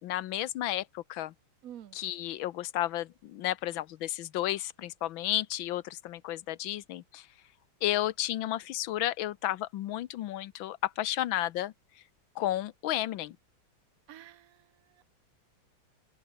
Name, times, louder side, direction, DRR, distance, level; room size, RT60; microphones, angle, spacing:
voice 1, 0.0-1.3 1.9-7.2 7.8-11.7 12.4-13.4, left 14 dB, 80° left, 1.6 m, -32 dB
voice 2, 1.6-2.0 14.1-15.1, right 11 dB, 55° right, 1.2 m, -49 dB
open air
omnidirectional pair, 2.2 m